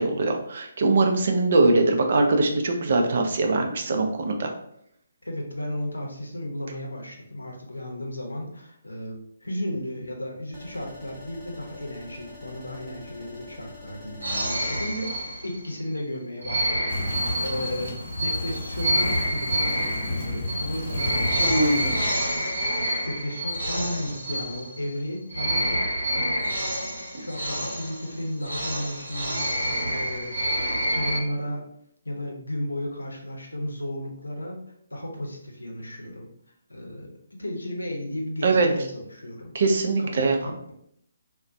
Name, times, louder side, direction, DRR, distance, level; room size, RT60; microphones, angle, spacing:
voice 1, 0.0-4.5 21.4-21.9 38.4-38.7 39.5-40.4, right 2 dB, 50° right, 4 dB, 0.4 m, -22 dB
voice 2, 5.2-22.1 23.0-25.8 26.1-26.6 27.2-31.6 32.0-34.6 34.9-36.3 36.7-37.1 37.4-39.5 40.0-40.7, left 1 dB, 80° left, 1 dB, 0.6 m, -34 dB
sound 1, 10.5-14.8, left 2 dB, 15° right, 0.9 m, -45 dB
sound 2, 14.2-15.8 16.4-25.0 25.3-31.2, equal, 85° right, 0.8 m, -28 dB
sound 3, 16.9-22.1, left 2 dB, 45° left, 0.7 m, -32 dB
2.4 x 2.1 x 2.5 m, 0.71 s
figure-of-eight pair, 140°, 0 cm